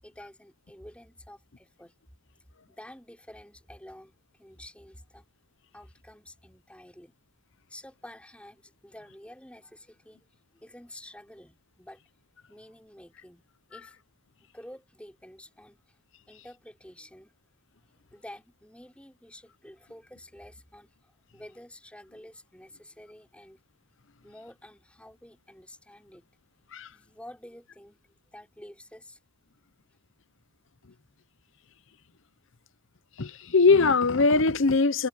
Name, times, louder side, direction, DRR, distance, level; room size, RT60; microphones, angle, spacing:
voice 1, 0.0-1.9 2.7-5.3 5.7-7.2 7.7-10.2 10.5-12.0 12.5-13.4 13.7-14.0 14.4-16.0 16.3-17.4 18.1-23.6 24.2-26.2 26.9-28.0 28.3-29.2, left 1 dB, 5° left, 6.2 m, -49 dB
voice 2, 33.2-35.1, left 4 dB, 60° left, 0.8 m, -21 dB
head